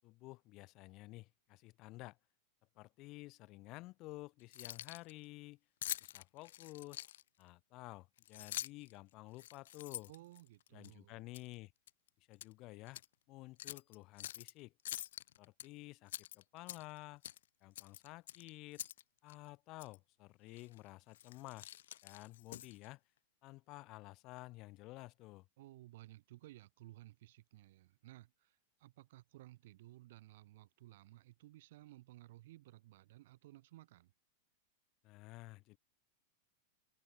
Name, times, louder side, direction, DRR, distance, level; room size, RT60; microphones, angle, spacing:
voice 1, 0.0-2.2 2.7-5.6 6.0-7.0 7.4-10.1 10.7-11.7 12.3-13.0 13.3-14.7 15.4-17.2 17.6-18.8 19.2-21.7 22.0-23.0 23.4-25.5 35.0-35.8, left 20 dB, 35° left, 4.7 m, -52 dB
Keys jangling, 4.4-5.1 5.8-7.4 8.2-8.9 9.3-10.9 11.3-11.5 11.9-12.5 12.9-13.1 13.6-14.5 14.9-15.7 16.1-17.0 17.2-17.4 17.8-19.0 19.3-19.4 19.8-20.0 20.6-20.8 21.1-22.9, left 12 dB, 80° left, 4.1 m, -46 dB
voice 2, 10.1-11.2 25.6-34.1, right 16 dB, 65° right, 7.2 m, -57 dB
supercardioid pair, 155°, 0 cm